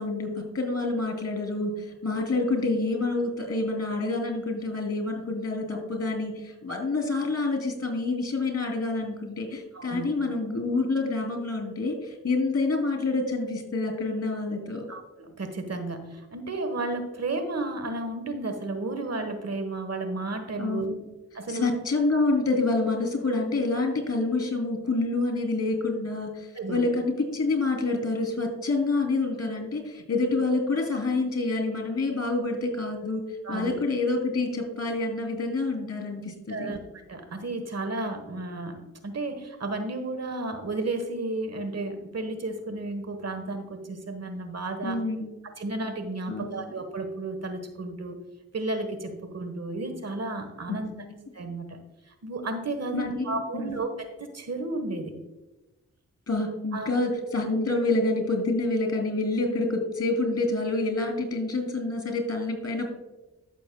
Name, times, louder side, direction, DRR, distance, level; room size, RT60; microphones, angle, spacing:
voice 1, 0.0-14.8 20.6-21.0 21.5-33.2 33.5-36.7 44.8-45.3 46.3-46.6 50.7-51.1 52.9-53.7 56.3-62.9, left 3 dB, 50° left, 3 dB, 3.1 m, -27 dB
voice 2, 9.7-10.1 14.9-20.9 21.3-21.7 26.5-26.8 33.4-33.7 36.5-45.0 45.6-48.2 48.5-50.9 51.3-51.8 52.2-55.1 56.7-56.9, right 2 dB, 55° right, 8 dB, 1.3 m, -33 dB
14.0 x 6.7 x 2.3 m, 1.1 s
cardioid pair, 45°, 31 cm